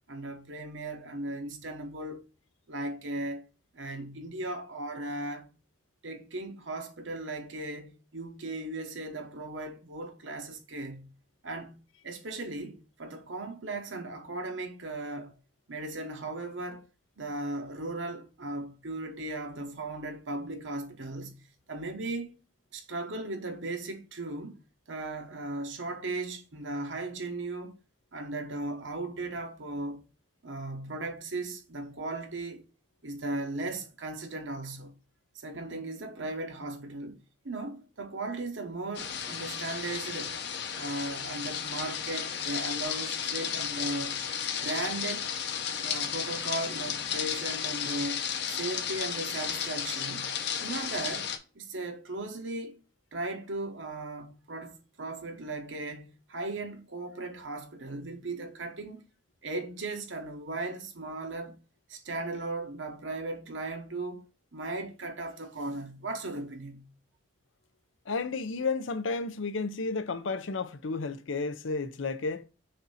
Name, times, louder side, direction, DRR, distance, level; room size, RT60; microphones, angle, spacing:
voice 1, 0.1-2.2 2.7-3.4 3.7-5.5 6.0-11.1 11.4-11.8 12.0-15.4 15.7-16.9 17.2-22.3 22.7-24.6 24.9-27.8 28.1-30.0 30.4-32.6 33.0-34.9 35.3-37.2 37.4-40.4 40.7-44.2 44.5-45.3 45.8-50.3 50.6-52.8 53.1-59.0 59.4-61.6 61.9-64.3 64.5-66.9, right 2 dB, 80° right, 1.1 m, -37 dB
sound 1, 38.9-51.4, left 8 dB, 60° left, 0.9 m, -33 dB
voice 2, 68.1-72.4, left 4 dB, 85° left, 0.6 m, -32 dB
6.6 x 2.7 x 5.5 m
head